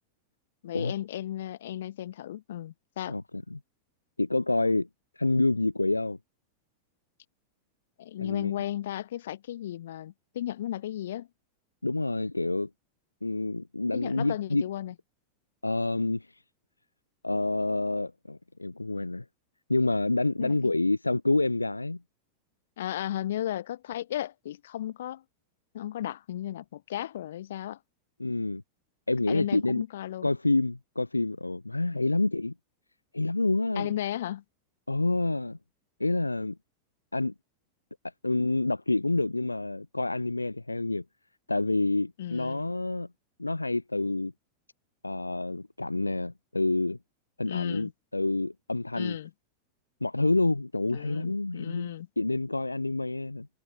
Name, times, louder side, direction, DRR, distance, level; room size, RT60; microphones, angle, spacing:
voice 1, 0.6-3.2 8.0-11.3 13.9-14.9 20.4-20.7 22.8-25.2 25.7-27.8 29.3-30.3 33.8-34.4 42.2-42.7 47.5-47.9 48.9-49.3 50.9-52.1, left 12 dB, 60° left, 0.7 m, -35 dB
voice 2, 3.1-3.6 4.2-4.9 5.2-6.2 8.2-8.5 11.8-12.7 13.2-14.6 15.6-16.4 17.2-19.2 19.7-22.0 28.2-28.6 29.1-29.8 30.2-32.5 33.1-33.9 34.9-35.6 36.0-36.6 37.1-37.3 38.2-41.0 41.5-43.1 43.4-44.3 45.0-47.0 47.4-49.2 50.0-53.5, left 2 dB, 85° left, 0.9 m, -28 dB
figure-of-eight pair, 90°, 0 cm